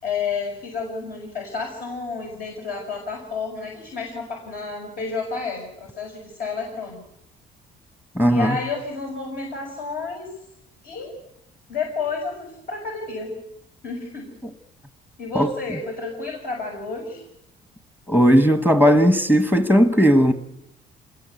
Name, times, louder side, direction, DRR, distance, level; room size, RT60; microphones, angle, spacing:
voice 1, 0.0-7.0 8.3-10.3 10.8-11.1 11.7-13.3 13.8-14.3 15.2-17.2, left 4 dB, 65° left, 6.7 m, -30 dB
voice 2, 8.1-8.6 15.3-15.5 18.1-20.3, equal, 10° left, 1.3 m, -16 dB
27.5 x 21.5 x 8.3 m
cardioid pair, 145°, 17 cm